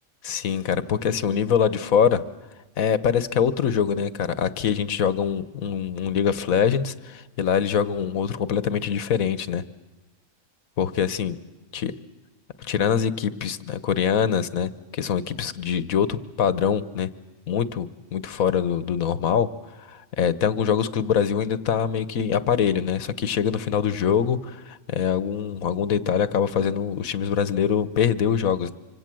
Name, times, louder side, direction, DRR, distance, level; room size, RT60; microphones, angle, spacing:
voice 1, 0.2-2.2 2.8-9.6 10.8-11.4 11.7-11.9 12.6-17.1 17.5-19.5 19.8-28.7, left 7 dB, 90° left, 15 dB, 1.5 m, -24 dB
26.0 x 25.5 x 7.7 m, 1.1 s
omnidirectional pair, 1.4 m